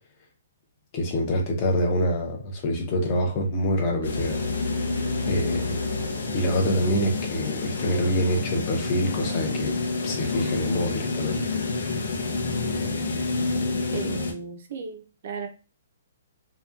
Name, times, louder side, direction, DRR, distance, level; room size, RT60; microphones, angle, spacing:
voice 1, 0.9-4.4 4.8-4.9 5.3-5.8 6.3-9.7 10.0-11.5, equal, 25° left, 0.6 m, -26 dB
sound 1, 4.0-14.3, left 3 dB, 80° left, 0.6 m, -29 dB
sound 2, 4.0-7.1, left 2 dB, 90° right, 0.7 m, -34 dB
voice 2, 13.9-15.5, right 5 dB, 45° right, 0.4 m, -35 dB
2.8 x 2.2 x 2.3 m
hypercardioid pair, 175°, 0 cm